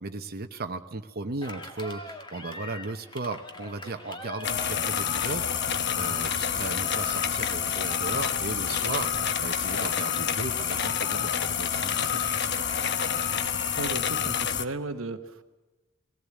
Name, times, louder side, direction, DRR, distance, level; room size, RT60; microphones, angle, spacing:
voice 1, 0.0-12.6, right 3 dB, 50° right, 6 dB, 0.9 m, -36 dB
Cheering, 1.4-14.1, left 1 dB, 25° left, 2.0 m, -43 dB
sound 1, 4.4-14.6, left 8 dB, 55° left, 1.0 m, -28 dB
voice 2, 13.8-15.5, right 3 dB, 75° right, 8 dB, 1.0 m, -35 dB
19.5 x 17.5 x 8.3 m, 1.1 s
head